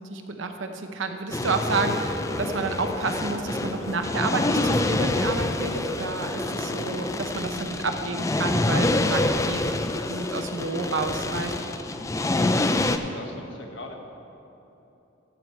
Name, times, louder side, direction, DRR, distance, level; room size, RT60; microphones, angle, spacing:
voice 1, 0.0-9.8 10.1-11.5, right 3 dB, 75° right, 6 dB, 0.8 m, -30 dB
sound 1, 1.3-13.0, left 2 dB, 15° left, 0.3 m, -26 dB
sound 2, 2.9-12.9, right 2 dB, 40° right, 1.1 m, -47 dB
voice 2, 12.7-14.0, left 1 dB, 65° left, 2 dB, 1.3 m, -42 dB
13.5 x 4.8 x 7.5 m, 3.0 s
head